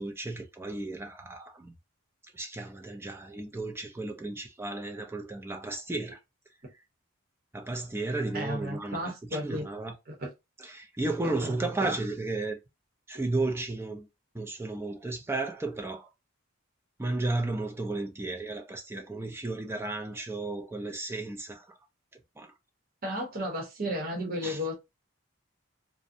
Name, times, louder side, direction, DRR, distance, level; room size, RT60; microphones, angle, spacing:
voice 1, 0.0-1.7 2.3-6.2 7.5-10.0 10.6-12.6 13.1-14.1 14.3-16.1 17.0-21.7 22.4-22.5 24.4-24.6, right 2 dB, 10° right, 0.3 m, -33 dB
voice 2, 8.3-9.7 10.1-10.3 11.4-11.5 11.8-11.9 23.0-24.7, equal, 45° right, 0.8 m, -33 dB
2.4 x 2.0 x 2.6 m
head